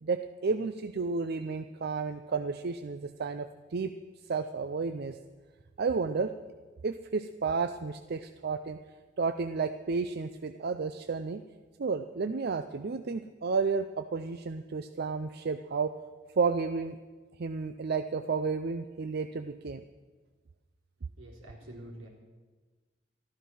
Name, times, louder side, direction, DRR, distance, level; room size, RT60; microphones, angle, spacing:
voice 1, 0.0-3.9 4.3-5.2 5.8-6.3 6.8-8.8 9.2-11.4 11.8-15.9 16.4-17.0 17.4-19.8, right 4 dB, 55° right, 9 dB, 0.5 m, -32 dB
voice 2, 21.2-22.1, right 1 dB, 75° right, -2 dB, 3.7 m, -46 dB
13.0 x 12.0 x 6.2 m, 1.3 s
head